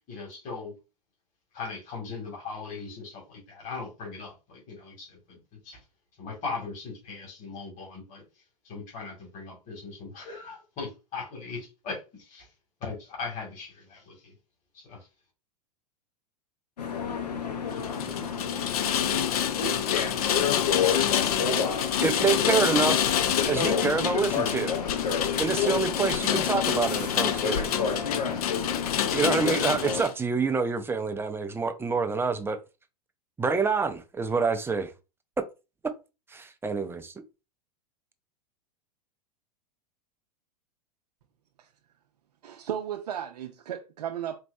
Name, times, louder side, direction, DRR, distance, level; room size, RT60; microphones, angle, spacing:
voice 1, 0.1-0.7 1.5-5.4 5.6-5.8 6.2-8.2 8.6-12.5 12.8-14.3 14.7-15.1, left 4 dB, 40° left, 2.2 m, -39 dB
sound 1, 16.8-30.0, left 6 dB, 85° left, 1.0 m, -30 dB
Rain, 17.8-30.1, left 10 dB, 65° left, 0.6 m, -28 dB
voice 2, 22.0-23.1 23.4-24.8 25.4-27.7 29.1-32.6 33.4-34.9 36.3-37.1, right 5 dB, 10° right, 0.5 m, -27 dB
voice 3, 42.4-44.4, right 10 dB, 75° right, 0.5 m, -35 dB
4.5 x 3.0 x 2.7 m
hypercardioid pair, 95°, 20 cm